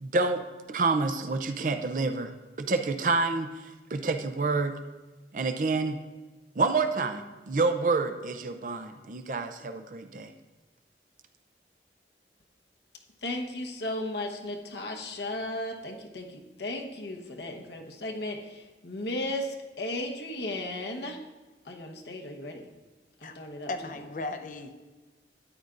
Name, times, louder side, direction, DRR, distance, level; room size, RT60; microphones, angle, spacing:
voice 1, 0.0-2.3 2.6-3.5 3.9-4.7 5.3-6.0 6.6-10.3, right 3 dB, 45° right, 8 dB, 0.5 m, -28 dB
voice 2, 13.2-21.2 21.6-22.7 23.2-23.9, left 1 dB, 75° left, 2 dB, 1.1 m, -35 dB
voice 3, 23.7-24.8, left 2 dB, 45° left, 8 dB, 0.7 m, -36 dB
13.0 x 9.5 x 2.5 m, 1.2 s
head